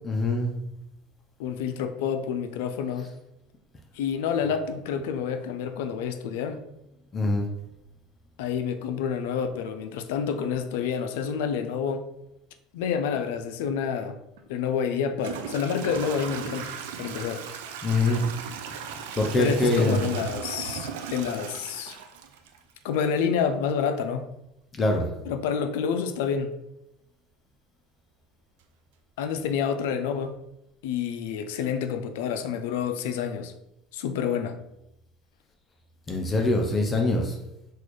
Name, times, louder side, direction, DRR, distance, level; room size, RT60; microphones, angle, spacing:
voice 1, 0.0-0.7 7.1-7.5 17.8-18.2 19.2-20.1 24.7-25.1 36.1-37.4, left 2 dB, 25° left, 2 dB, 0.5 m, -24 dB
voice 2, 1.4-3.1 3.9-6.6 8.4-12.0 12.7-14.2 14.5-16.7 17.0-17.4 19.4-22.0 22.8-24.2 25.3-26.5 29.2-30.3 30.8-33.5 33.9-34.6, left 7 dB, 80° left, 8 dB, 0.3 m, -28 dB
Toilet flush / Trickle dribble, 14.4-14.5 15.2-23.0, right 7 dB, 85° right, 0.4 m, -37 dB
4.0 x 2.4 x 3.1 m, 0.88 s
supercardioid pair, 120°, 0 cm